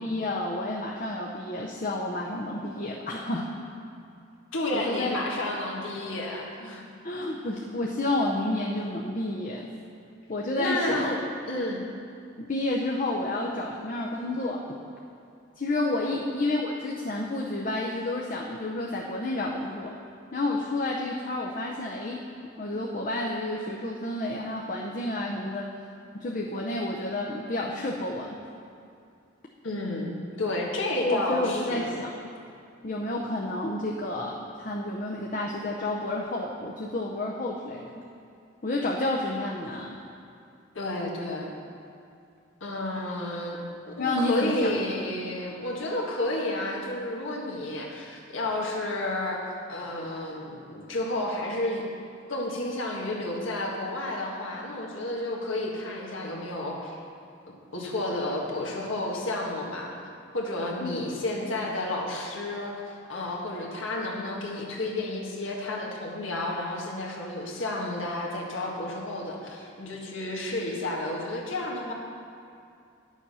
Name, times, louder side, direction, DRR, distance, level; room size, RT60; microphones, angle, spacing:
voice 1, 0.0-3.5 4.7-5.1 7.0-9.7 10.3-11.1 12.4-14.6 15.6-19.9 20.3-22.2 22.6-25.7 26.2-28.3 31.0-32.2 32.8-37.9 38.6-40.0 44.0-44.9 60.8-61.0, left 2 dB, 40° left, -2 dB, 0.7 m, -30 dB
voice 2, 4.5-6.8 10.6-11.2 11.5-11.8 16.0-16.1 29.6-32.0 40.7-41.5 42.6-43.6 43.9-51.8 52.3-57.0 57.7-59.9 60.3-71.9, left 1 dB, 90° left, -2 dB, 1.7 m, -31 dB
10.5 x 7.2 x 5.6 m, 2.4 s
head